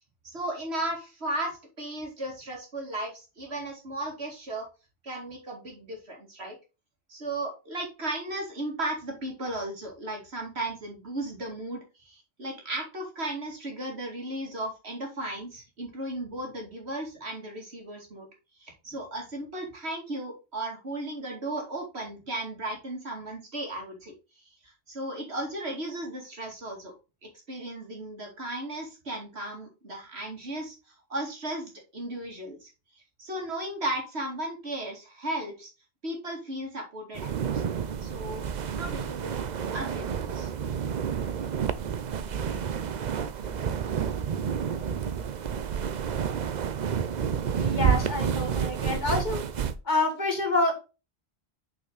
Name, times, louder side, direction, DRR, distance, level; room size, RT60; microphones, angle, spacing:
voice 1, 0.2-4.7 5.0-6.6 7.1-18.3 18.6-26.9 27.2-30.7 31.1-32.7 33.2-35.7 36.0-37.7 38.0-40.5, right 1 dB, 80° right, 1 dB, 2.7 m, -35 dB
sound 1, 37.1-49.7, right 7 dB, 50° right, 0.6 m, -30 dB
voice 2, 47.6-49.5 49.8-50.7, left 2 dB, 45° left, 3 dB, 2.2 m, -27 dB
6.4 x 5.8 x 3.9 m, 0.29 s
omnidirectional pair, 1.1 m